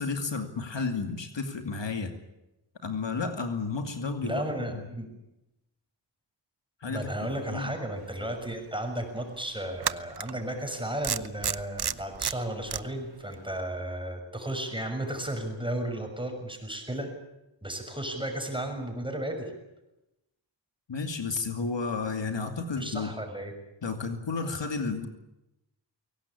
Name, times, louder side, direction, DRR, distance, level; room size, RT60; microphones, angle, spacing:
voice 1, 0.0-2.2 2.8-4.5 6.8-7.1 7.5-7.7 20.9-23.1 23.8-25.1, left 4 dB, 70° left, 6 dB, 2.6 m, -32 dB
voice 2, 4.2-5.1 6.9-17.1 17.6-19.5 22.7-23.5, right 1 dB, 10° right, 4 dB, 6.6 m, -34 dB
sound 1, 8.4-8.5 9.8-10.3 11.0-12.8, right 8 dB, 60° right, 0.9 m, -30 dB
23.0 x 18.0 x 9.9 m, 0.93 s
cardioid pair, 55°, 45 cm